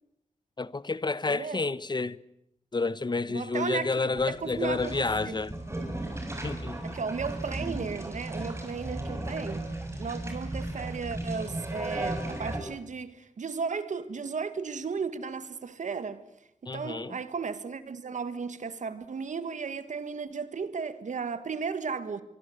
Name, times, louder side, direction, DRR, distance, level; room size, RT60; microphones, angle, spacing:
voice 1, 0.6-2.2 2.7-5.6 6.4-6.8 16.6-17.2, left 3 dB, 35° left, 1.0 m, -30 dB
voice 2, 1.3-1.6 3.3-5.4 6.8-9.7 10.0-16.2 16.6-22.2, right 5 dB, 85° right, 1.9 m, -35 dB
sound 1, 4.1-12.6, right 1 dB, 20° right, 7.2 m, -36 dB
24.5 x 24.0 x 8.1 m
wide cardioid pair, 75°, 12 cm